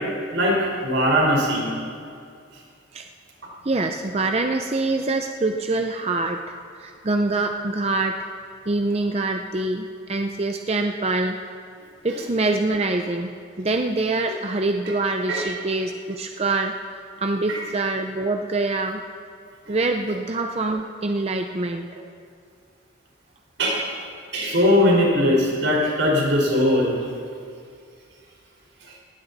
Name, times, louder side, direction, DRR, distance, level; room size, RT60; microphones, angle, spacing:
voice 1, 0.8-1.7 15.3-15.4 17.5-17.6 19.6-19.7 23.6-23.8 24.3-27.0, left 1 dB, 80° right, -2 dB, 4.6 m, -20 dB
voice 2, 3.6-6.4 6.7-8.2 8.7-11.4 12.0-16.7 17.2-19.0 19.7-21.8, right 2 dB, 30° right, 4 dB, 0.6 m, -25 dB
19.5 x 16.0 x 4.1 m, 2.3 s
head